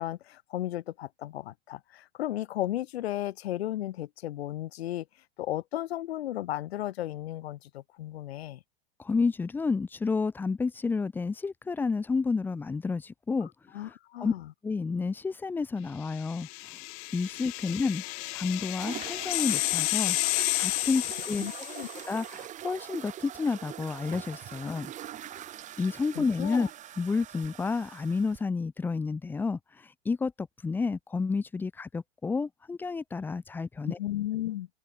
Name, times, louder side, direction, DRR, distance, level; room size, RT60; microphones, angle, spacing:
voice 1, 0.0-5.1 5.4-8.6 13.7-14.5 21.4-21.9 24.6-24.8 26.2-26.7 33.8-34.7, left 14 dB, 80° left, 1.7 m, -34 dB
voice 2, 9.0-13.5 13.8-13.9 14.2-14.3 14.6-16.8 17.1-18.0 18.3-20.2 20.6-21.4 22.1-24.9 25.3-25.4 25.8-26.7 27.0-29.6 30.1-34.0, left 4 dB, 5° left, 0.4 m, -30 dB
sound 1, 16.2-22.1, left 27 dB, 50° left, 1.0 m, -31 dB
sound 2, 18.8-28.4, right 12 dB, 25° right, 1.1 m, -43 dB
open air
supercardioid pair, 140°, 31 cm